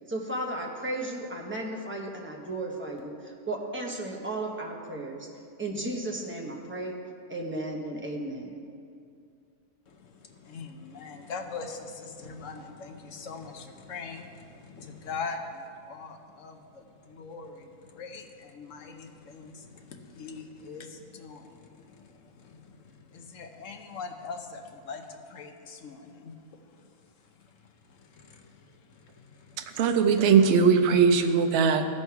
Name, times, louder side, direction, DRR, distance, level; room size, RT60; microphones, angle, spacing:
voice 1, 0.1-5.3 5.6-6.9 7.3-8.6, right 1 dB, 10° right, -1 dB, 0.8 m, -34 dB
voice 2, 9.9-26.9 27.9-29.7, left 4 dB, 65° left, 4 dB, 1.1 m, -42 dB
voice 3, 29.6-31.8, right 6 dB, 60° right, 6 dB, 0.8 m, -20 dB
15.0 x 5.4 x 4.7 m, 2.3 s
omnidirectional pair, 1.5 m